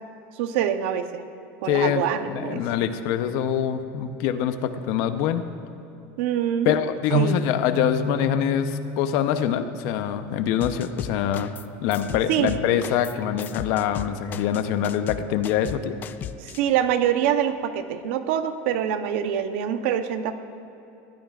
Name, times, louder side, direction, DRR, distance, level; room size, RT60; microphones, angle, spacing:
voice 1, 0.4-1.2 1.6-2.6 6.2-6.7 7.1-7.4 12.3-12.6 16.4-20.3, right 10 dB, 70° right, 9 dB, 0.9 m, -25 dB
voice 2, 1.7-2.0 2.3-5.4 6.6-11.5 11.8-16.0, left 9 dB, 55° left, 9 dB, 0.8 m, -24 dB
sound 1, 7.1-10.6, right 1 dB, 40° right, 0.9 m, -30 dB
sound 2, 10.6-11.7 11.9-16.6, left 9 dB, 25° left, 0.4 m, -36 dB
20.5 x 15.5 x 2.5 m, 2.9 s
cardioid pair, 165°, 7 cm